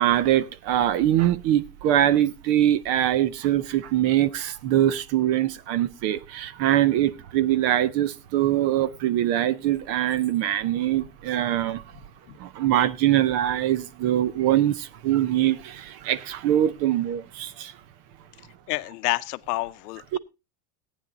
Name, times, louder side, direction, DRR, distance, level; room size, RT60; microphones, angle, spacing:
voice 1, 0.0-11.8 12.4-17.7 20.1-20.2, right 12 dB, 35° right, 0.5 m, -23 dB
voice 2, 18.7-20.2, left 20 dB, 85° left, 0.8 m, -28 dB
15.0 x 9.3 x 3.9 m
supercardioid pair, 160°, 46 cm